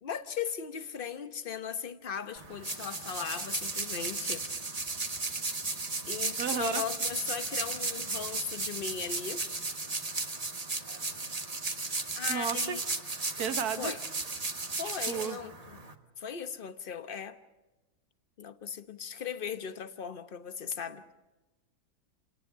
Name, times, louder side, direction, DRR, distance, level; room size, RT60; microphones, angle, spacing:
voice 1, 0.0-4.4 6.1-9.4 12.1-12.8 13.8-14.0 14.8-15.8 16.2-17.4 18.4-21.0, left 7 dB, 40° left, 1.1 m, -38 dB
sound 1, 2.4-15.9, right 3 dB, 25° right, 1.4 m, -35 dB
voice 2, 6.4-6.8 12.3-12.8 13.4-13.9 15.1-15.4, right 7 dB, 80° right, 1.7 m, -33 dB
29.0 x 19.0 x 5.8 m
omnidirectional pair, 1.6 m